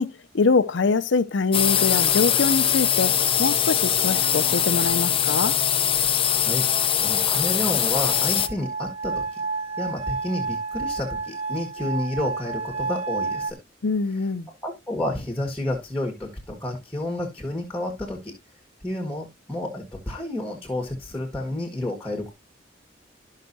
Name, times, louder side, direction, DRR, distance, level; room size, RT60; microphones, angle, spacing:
voice 1, 0.0-3.1 3.4-5.6 13.8-14.5, left 4 dB, 70° left, 0.6 m, -24 dB
sound 1, 1.5-8.5, left 9 dB, 30° left, 0.7 m, -22 dB
voice 2, 6.3-9.4 9.8-13.6 14.6-18.3 18.8-22.3, left 1 dB, 5° left, 1.9 m, -30 dB
sound 2, 6.4-13.5, right 4 dB, 35° right, 0.6 m, -31 dB
13.0 x 5.7 x 2.7 m
head